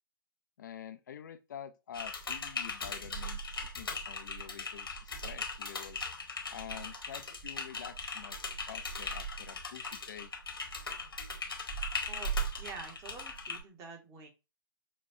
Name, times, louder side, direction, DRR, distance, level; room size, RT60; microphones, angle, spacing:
voice 1, 0.6-6.1 6.5-10.3, left 9 dB, 55° left, 0.4 m, -48 dB
Typing, 1.9-13.6, left 1 dB, 80° left, 1.2 m, -38 dB
voice 2, 12.6-14.3, right 4 dB, 25° right, 1.1 m, -47 dB
6.1 x 2.3 x 2.7 m
figure-of-eight pair, 120°, 12 cm